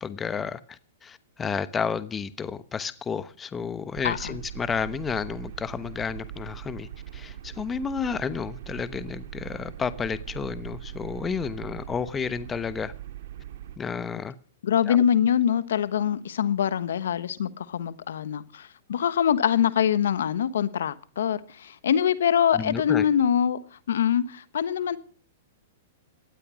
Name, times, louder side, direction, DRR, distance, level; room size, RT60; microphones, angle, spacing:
voice 1, 0.0-12.9 13.8-14.3 14.9-15.0 22.5-23.0, left 6 dB, 15° left, 1.1 m, -31 dB
sound 1, 3.9-13.8, right 11 dB, 65° right, 2.1 m, -41 dB
voice 2, 4.0-4.4 14.6-23.6 23.9-25.0, left 9 dB, 75° left, 1.2 m, -24 dB
18.0 x 12.5 x 6.3 m
hypercardioid pair, 130°, 0 cm